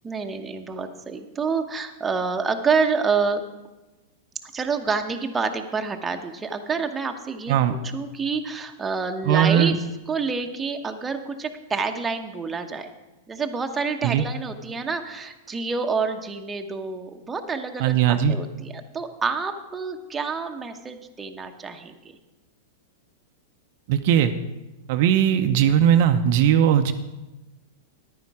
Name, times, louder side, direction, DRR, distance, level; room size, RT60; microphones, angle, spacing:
voice 1, 0.0-3.4 4.5-9.7 10.1-12.9 13.3-22.0, right 5 dB, 15° right, 4 dB, 0.9 m, -28 dB
voice 2, 9.2-9.8 14.0-14.2 17.8-18.4 23.9-24.3 24.9-26.9, right 9 dB, 55° right, 7 dB, 0.6 m, -19 dB
10.5 x 9.6 x 4.8 m, 1.1 s
hypercardioid pair, 125°, 0 cm